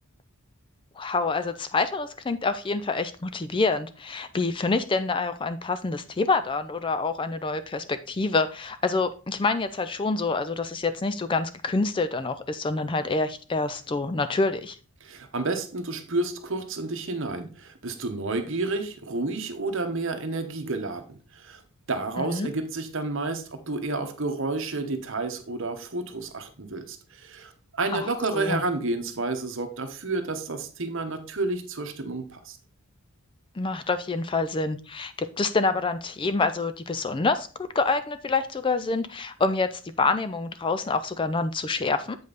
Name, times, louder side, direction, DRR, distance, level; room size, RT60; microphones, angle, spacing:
voice 1, 1.0-14.8 22.2-22.5 27.9-28.1 28.3-28.6 33.6-42.2, left 3 dB, 20° left, 11 dB, 0.3 m, -27 dB
voice 2, 15.0-21.6 21.9-32.6, right 3 dB, 55° right, 7 dB, 1.1 m, -30 dB
7.8 x 5.3 x 4.0 m, 0.37 s
head